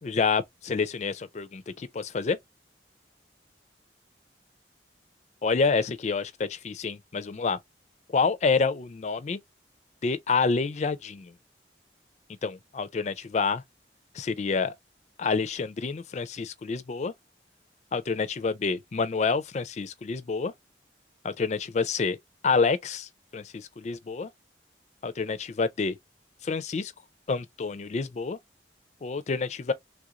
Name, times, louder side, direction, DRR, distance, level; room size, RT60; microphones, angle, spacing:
voice 1, 0.0-2.4 5.4-7.6 8.1-9.4 10.0-11.3 12.4-13.6 14.1-14.7 15.2-17.1 17.9-20.5 21.2-22.2 22.4-24.3 25.0-25.9 26.4-26.9 27.3-28.4 29.0-29.7, left 4 dB, 40° left, 0.4 m, -28 dB
3.3 x 2.4 x 2.8 m
head